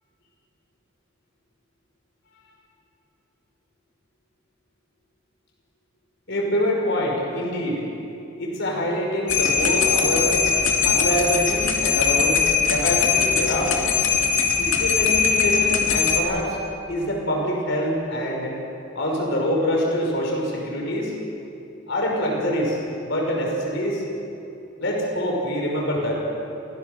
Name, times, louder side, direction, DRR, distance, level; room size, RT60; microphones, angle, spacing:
voice 1, 6.3-7.9 8.4-10.5 10.8-12.4 12.7-13.8 14.6-16.6 16.9-18.6 18.9-21.2 21.9-24.0 24.8-26.2, equal, 60° left, 0 dB, 5.6 m, -25 dB
sound 1, 9.3-16.2, left 6 dB, 85° left, 2.3 m, -21 dB
29.5 x 17.0 x 6.9 m, 2.9 s
head